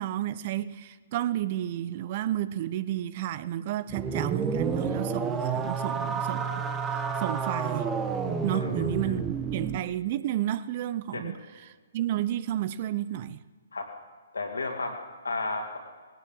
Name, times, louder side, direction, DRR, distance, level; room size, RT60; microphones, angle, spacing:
voice 1, 0.0-6.6 7.2-7.9 8.3-11.4 11.9-13.4, right 12 dB, 40° right, 16 dB, 0.6 m, -31 dB
sound 1, 3.9-9.8, right 5 dB, 15° right, 1.0 m, -30 dB
voice 2, 8.5-8.9 11.1-11.3 13.7-13.9 14.3-15.8, left 3 dB, 75° left, 2 dB, 2.7 m, -33 dB
18.5 x 17.5 x 3.8 m, 1.5 s
figure-of-eight pair, 130°, 0 cm